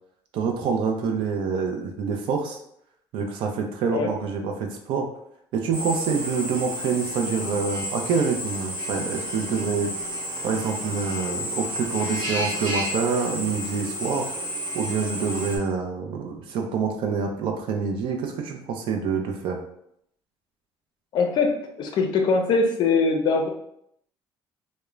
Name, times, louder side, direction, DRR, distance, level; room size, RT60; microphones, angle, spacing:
voice 1, 0.3-2.6 3.1-5.1 5.5-9.9 10.4-14.3 14.7-19.6, right 5 dB, 70° right, 3 dB, 0.5 m, -26 dB
Drill, 5.7-15.6, equal, 50° right, 0.8 m, -31 dB
voice 2, 21.1-23.5, left 4 dB, 55° left, 3 dB, 0.4 m, -22 dB
2.3 x 2.1 x 3.0 m, 0.73 s
cardioid pair, 135°, 9 cm